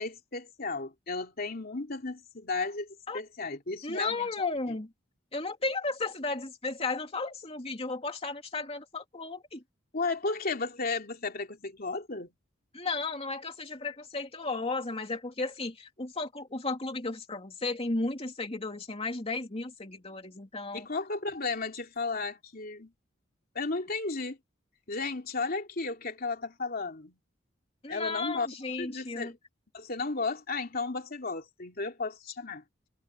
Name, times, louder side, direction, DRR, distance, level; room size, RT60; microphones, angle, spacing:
voice 1, 0.0-2.9 3.1-4.5 9.9-12.3 20.7-22.9 23.5-24.4 24.9-27.2 27.9-28.5 28.8-29.4 29.7-32.6, left 3 dB, 50° left, 3.0 m, -34 dB
voice 2, 3.8-4.9 5.3-9.6 12.7-20.9 27.8-29.3, left 3 dB, 30° left, 2.8 m, -34 dB
head